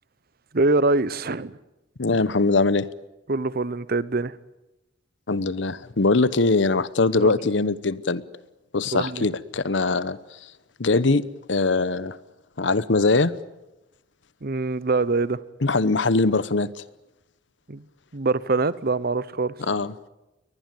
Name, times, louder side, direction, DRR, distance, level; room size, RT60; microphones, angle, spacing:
voice 1, 0.5-1.6 3.3-4.4 7.2-7.3 8.9-9.3 14.4-15.4 17.7-17.8 18.1-19.5, right 3 dB, 55° right, 0.9 m, -24 dB
voice 2, 2.0-2.9 5.3-8.2 8.7-10.2 10.8-11.2 11.5-12.2 12.6-13.3 15.6-16.7 19.7-19.9, left 3 dB, 75° left, 0.9 m, -21 dB
22.5 x 20.0 x 9.2 m
head